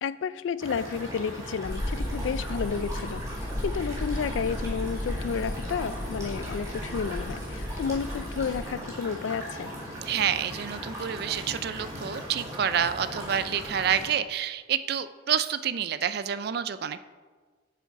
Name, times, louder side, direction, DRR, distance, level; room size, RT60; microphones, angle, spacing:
voice 1, 0.0-3.2 3.6-9.7, left 6 dB, 80° left, 16 dB, 0.3 m, -31 dB
sound 1, 0.6-14.1, equal, 15° right, 2.1 m, -38 dB
sound 2, 1.6-8.7, left 1 dB, 25° left, 0.7 m, -35 dB
voice 2, 10.0-17.0, right 8 dB, 55° right, 13 dB, 0.4 m, -28 dB
7.1 x 7.0 x 4.6 m, 1.4 s
head